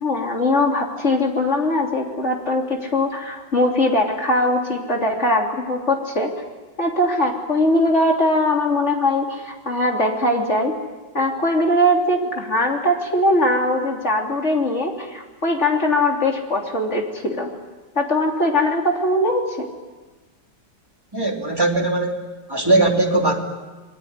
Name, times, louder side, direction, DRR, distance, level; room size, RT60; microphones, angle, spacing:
voice 1, 0.0-6.3 6.8-10.7 11.1-17.5 18.0-19.7, left 1 dB, 35° left, 1 dB, 3.5 m, -21 dB
voice 2, 21.1-22.2 22.5-23.3, right 2 dB, 10° right, 1 dB, 3.1 m, -19 dB
27.5 x 21.5 x 9.6 m, 1.2 s
omnidirectional pair, 2.0 m